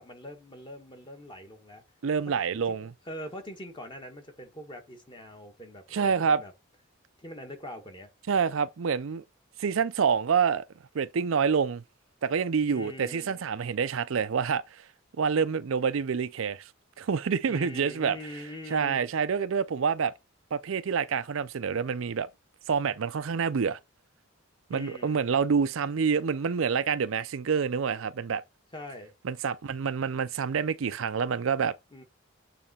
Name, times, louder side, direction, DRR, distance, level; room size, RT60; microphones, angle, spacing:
voice 1, 0.0-1.8 2.7-6.5 7.2-8.1 12.7-13.4 17.5-19.1 24.7-25.2 28.7-29.1 31.9-32.0, left 1 dB, 25° left, 1.4 m, -43 dB
voice 2, 2.0-2.9 5.9-6.4 8.3-9.2 9.6-10.6 10.9-11.8 12.2-14.8 15.2-16.7 17.0-18.2 18.7-20.1 20.5-22.3 22.7-23.8 24.7-28.4 29.2-31.7, right 6 dB, 70° right, 0.5 m, -27 dB
8.5 x 3.3 x 4.2 m
head